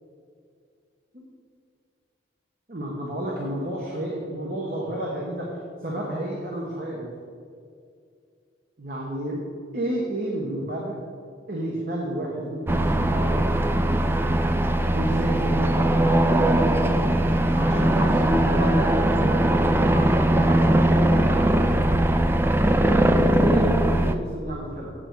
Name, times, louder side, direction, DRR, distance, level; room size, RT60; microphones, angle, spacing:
voice 1, 2.7-5.5 5.8-7.1 8.8-9.4 9.7-11.0 11.5-13.5 14.9-17.1 17.5-21.6 22.8-23.1 23.4-24.9, right 1 dB, 50° right, -2 dB, 1.1 m, -30 dB
sound 1, 12.7-24.1, right 1 dB, 10° right, 0.3 m, -20 dB
8.7 x 6.8 x 4.7 m, 2.3 s
head